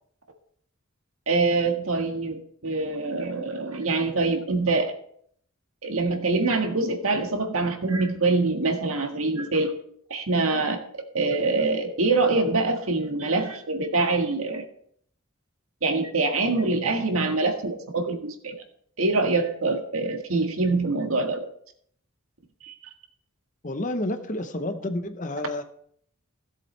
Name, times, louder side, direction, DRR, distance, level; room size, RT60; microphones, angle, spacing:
voice 1, 1.3-4.9 5.8-9.7 10.1-14.6 15.8-18.5 19.0-21.5 22.6-22.7, right 3 dB, 85° right, 3 dB, 1.7 m, -25 dB
voice 2, 23.6-25.6, left 1 dB, 35° left, 8 dB, 0.9 m, -30 dB
17.0 x 7.6 x 3.3 m, 0.65 s
head